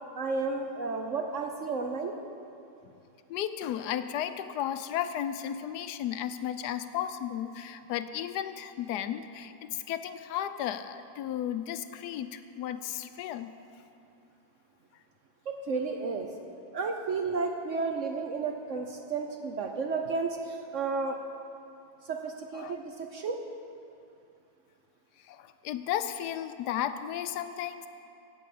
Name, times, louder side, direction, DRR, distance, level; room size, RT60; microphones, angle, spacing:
voice 1, 0.1-2.1 15.5-16.3 16.7-21.2 22.0-23.4, right 4 dB, 60° right, 4 dB, 0.9 m, -32 dB
voice 2, 3.3-13.6 22.5-22.7 25.2-27.9, left 10 dB, 75° left, 11 dB, 1.1 m, -34 dB
16.5 x 5.6 x 7.7 m, 2.7 s
omnidirectional pair, 1.9 m